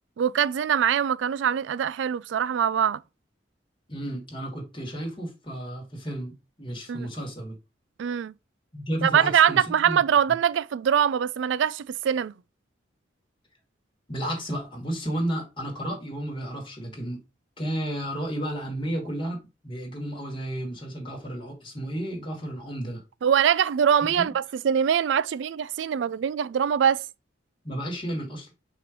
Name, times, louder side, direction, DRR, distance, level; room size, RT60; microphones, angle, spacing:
voice 1, 0.2-3.0 6.9-7.1 8.0-8.3 9.0-12.3 23.2-27.0, right 8 dB, 85° right, 0.3 m, -23 dB
voice 2, 3.9-6.3 6.6-7.6 8.7-9.6 9.8-10.0 14.1-17.2 17.6-23.0 24.2-24.3 27.6-28.5, right 1 dB, 30° left, 2.7 m, -32 dB
5.9 x 3.2 x 5.2 m
head